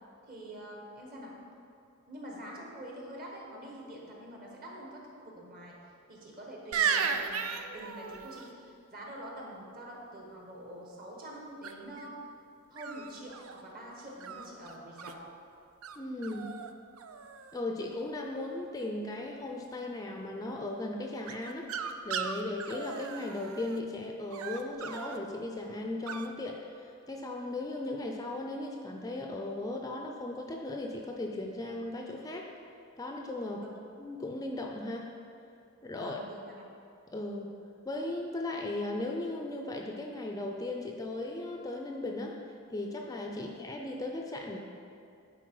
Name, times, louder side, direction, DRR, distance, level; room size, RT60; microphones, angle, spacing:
voice 1, 0.3-1.3 2.1-5.8 6.1-12.2 12.7-15.3 33.5-33.7 35.9-36.5 43.3-43.5, right 1 dB, 45° right, -2 dB, 1.5 m, -46 dB
sound 1, 6.7-8.5 11.6-12.0 12.8-13.6 14.2-15.1 15.8-16.0 16.2-16.7 17.0-17.6 21.3-23.8 24.3-25.2 26.1-26.3, right 6 dB, 75° right, 0.4 m, -35 dB
voice 2, 16.0-16.5 17.5-21.7 22.0-32.5 33.0-33.6 34.0-35.1 35.8-36.2 37.1-37.5 37.8-42.4 42.7-44.6, left 2 dB, 15° left, 1 dB, 0.4 m, -37 dB
9.7 x 4.3 x 4.7 m, 2.6 s
head